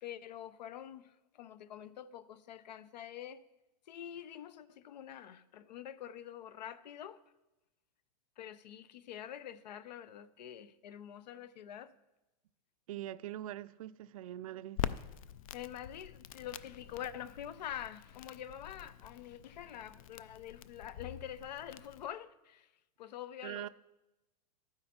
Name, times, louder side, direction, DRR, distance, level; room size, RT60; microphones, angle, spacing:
voice 1, 0.0-3.4 3.9-7.2 8.4-11.9 15.5-22.7 23.0-23.7, left 10 dB, 85° left, 0.7 m, -46 dB
voice 2, 12.9-14.8 23.4-23.7, right 13 dB, 55° right, 0.4 m, -43 dB
Crackle, 14.8-22.1, left 10 dB, 55° left, 0.5 m, -45 dB
12.0 x 9.7 x 4.3 m
supercardioid pair, 175°, 21 cm